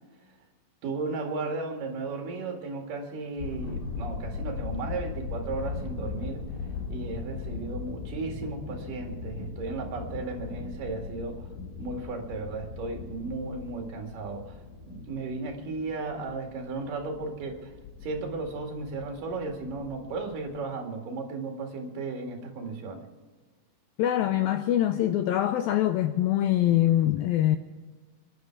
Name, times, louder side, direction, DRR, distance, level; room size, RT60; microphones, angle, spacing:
voice 1, 0.8-6.4 6.9-11.5 11.8-14.5 14.9-17.7 18.0-23.0, right 3 dB, 55° right, 3.5 m, -35 dB
sound 1, 3.4-20.6, left 4 dB, 60° left, 3.6 m, -39 dB
voice 2, 24.0-27.6, left 12 dB, 90° left, 2.0 m, -24 dB
26.5 x 11.0 x 4.6 m
omnidirectional pair, 4.9 m